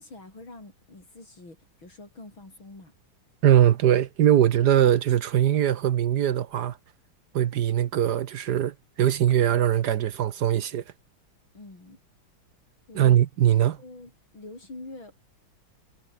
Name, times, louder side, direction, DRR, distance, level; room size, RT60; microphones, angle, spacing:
voice 1, 0.0-2.9 11.5-12.0 12.9-13.2 13.8-15.2, left 2 dB, 80° left, 8.3 m, -45 dB
voice 2, 3.4-6.8 7.3-10.8 12.9-13.8, right 11 dB, 60° right, 1.3 m, -21 dB
omnidirectional pair, 2.2 m